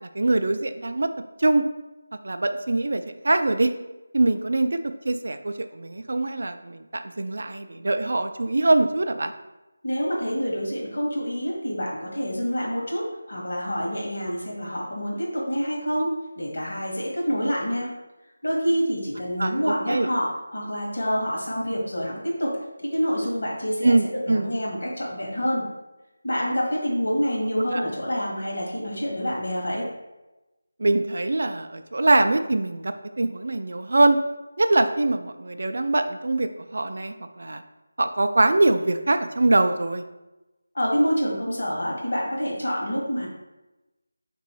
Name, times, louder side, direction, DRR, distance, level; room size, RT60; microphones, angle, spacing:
voice 1, 0.0-1.1 1.4-1.6 2.2-3.7 4.1-4.8 5.0-9.3 19.4-20.1 23.8-24.5 27.7-27.8 30.8-34.2 34.6-37.6 38.0-40.0, right 2 dB, 45° right, 8 dB, 0.3 m, -23 dB
voice 2, 9.8-17.9 18.4-22.6 22.9-25.7 26.2-29.9 40.7-43.3, equal, 60° left, -3 dB, 1.4 m, -27 dB
3.7 x 3.0 x 4.7 m, 1.0 s
figure-of-eight pair, 180°, 0 cm